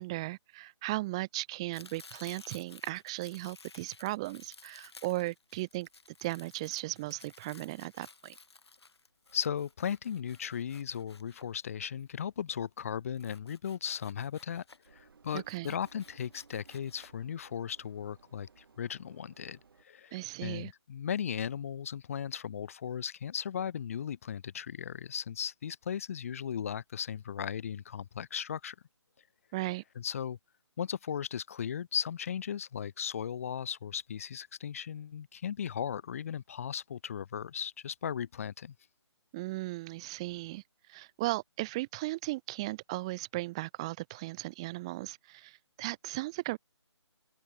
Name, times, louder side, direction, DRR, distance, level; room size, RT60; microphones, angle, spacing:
voice 1, 0.0-5.9 6.2-8.3 15.3-15.8 20.1-20.7 29.5-29.8 39.3-40.6 40.9-46.6, right 20 dB, 10° right, 0.5 m, -36 dB
Domestic sounds home sounds, 1.7-12.0 13.1-14.9 15.2-17.1, left 4 dB, 60° left, 2.6 m, -56 dB
voice 2, 9.3-19.6 19.8-28.8 30.0-30.4 30.8-38.7, left 8 dB, 30° left, 0.7 m, -37 dB
Engine, 14.8-19.8, right 5 dB, 50° right, 7.7 m, -61 dB
open air
figure-of-eight pair, 145°, 15 cm